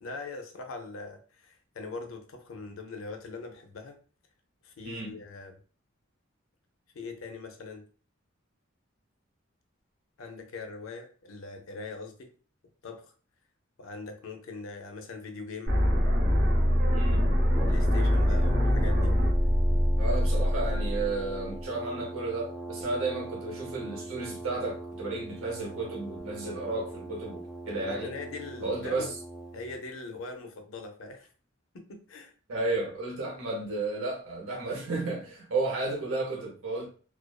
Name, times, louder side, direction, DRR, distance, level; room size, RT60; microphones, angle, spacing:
voice 1, 0.0-4.0 4.6-5.5 6.9-7.8 10.2-12.3 12.8-13.1 13.8-15.8 17.7-19.1 22.0-22.1 27.8-29.1 29.5-31.3 31.7-32.3, left 3 dB, 80° left, 0.5 m, -41 dB
voice 2, 4.8-5.2 16.9-17.3 20.0-28.1 28.6-29.1 32.5-36.9, right 3 dB, 90° right, 0.7 m, -33 dB
sound 1, 15.7-21.6, equal, 55° right, 0.7 m, -24 dB
Brass instrument, 17.5-29.8, right 2 dB, ahead, 0.5 m, -41 dB
2.4 x 2.2 x 2.3 m
head